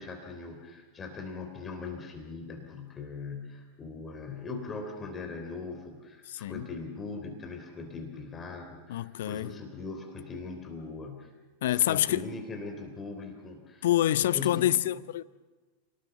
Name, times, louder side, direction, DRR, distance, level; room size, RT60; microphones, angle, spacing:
voice 1, 0.0-11.3 11.6-13.9 14.1-14.7, left 4 dB, 20° left, 3.3 m, -40 dB
voice 2, 6.3-6.7 8.9-9.5 11.6-12.3 13.8-15.2, left 13 dB, 55° left, 0.6 m, -27 dB
27.0 x 19.0 x 7.1 m
figure-of-eight pair, 90°, 0 cm